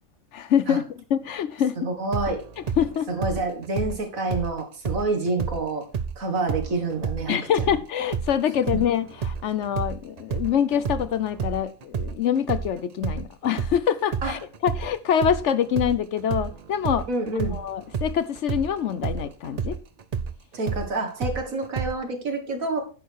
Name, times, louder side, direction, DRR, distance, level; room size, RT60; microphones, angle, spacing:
voice 1, 0.3-1.9 2.6-3.1 7.3-17.1 17.5-19.8, left 9 dB, 65° left, 0.9 m, -25 dB
voice 2, 1.8-2.4 3.1-5.9 6.2-7.7 8.7-8.8 14.2-14.3 17.1-17.6 20.5-22.8, right 2 dB, 75° right, 2.2 m, -28 dB
sound 1, 2.1-5.6 5.9-13.8 14.1-21.9, right 6 dB, 50° right, 0.5 m, -30 dB
10.0 x 6.6 x 4.7 m
omnidirectional pair, 1.4 m